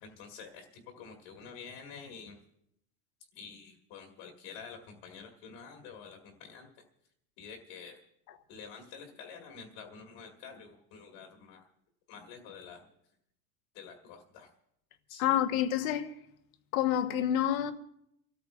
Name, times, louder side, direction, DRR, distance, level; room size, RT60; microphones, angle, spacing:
voice 1, 0.0-2.4 3.3-6.7 7.4-8.0 8.5-11.7 12.1-12.9 13.7-14.5 15.1-15.3, left 6 dB, 40° left, 1.8 m, -48 dB
voice 2, 15.2-16.1 16.7-17.7, left 11 dB, 60° left, 1.3 m, -28 dB
30.0 x 13.5 x 2.5 m
supercardioid pair, 180°, 47 cm